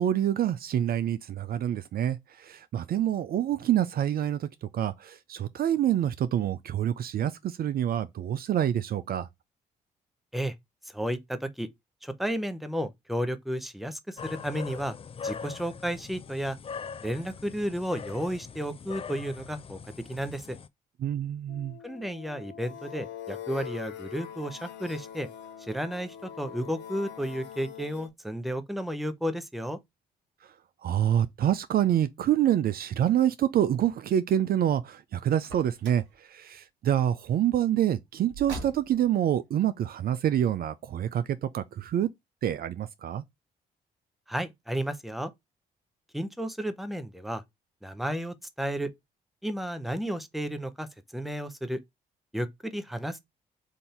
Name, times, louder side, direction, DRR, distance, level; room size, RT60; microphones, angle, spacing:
voice 1, 0.0-9.3 21.0-21.8 30.8-42.1 42.4-43.2, right 10 dB, 55° right, 0.4 m, -27 dB
voice 2, 10.9-11.7 12.0-14.9 15.2-16.6 17.0-19.8 20.1-20.6 21.8-25.3 25.6-29.8 44.3-45.3 46.1-47.4 47.8-48.9 49.4-50.9 51.1-51.8 52.3-53.2, equal, ahead, 0.8 m, -32 dB
sound 1, 14.2-20.7, left 6 dB, 30° left, 0.4 m, -41 dB
sound 2, 21.5-28.1, left 10 dB, 75° left, 0.6 m, -43 dB
Car, 35.4-36.2 38.3-39.2, right 2 dB, 75° right, 1.3 m, -41 dB
3.8 x 2.6 x 4.3 m
hypercardioid pair, 45°, 19 cm